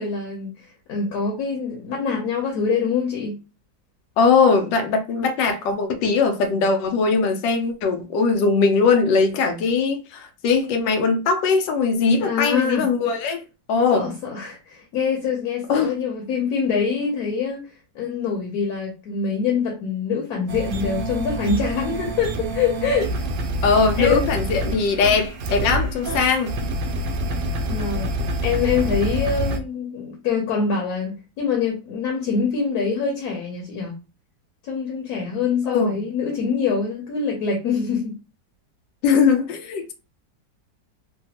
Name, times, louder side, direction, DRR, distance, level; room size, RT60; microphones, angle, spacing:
voice 1, 0.0-3.4 12.2-12.9 13.9-17.6 17.9-23.2 24.0-24.3 27.7-28.1 28.4-33.9 34.6-38.2, left 5 dB, 65° left, 1.2 m, -25 dB
voice 2, 4.2-13.4 13.7-14.1 15.7-15.9 23.6-26.5 35.7-36.0 39.0-39.9, left 5 dB, 85° left, 1.3 m, -20 dB
sound 1, 20.5-29.6, right 1 dB, 90° right, 1.3 m, -27 dB
3.1 x 2.2 x 2.8 m
omnidirectional pair, 1.9 m